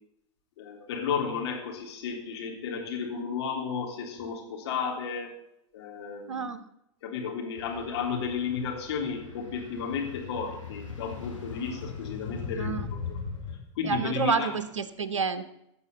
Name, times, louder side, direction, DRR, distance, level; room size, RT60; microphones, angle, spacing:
voice 1, 0.6-5.3 5.7-6.5 7.0-13.2 13.8-14.5, left 6 dB, 60° left, 0 dB, 3.4 m, -33 dB
voice 2, 6.3-6.6 12.6-12.9 13.8-15.5, right 5 dB, 75° right, 12 dB, 0.9 m, -29 dB
sound 1, 7.6-13.6, left 5 dB, 85° left, 3.0 m, -39 dB
16.5 x 5.5 x 7.0 m, 0.82 s
figure-of-eight pair, 90°, 16 cm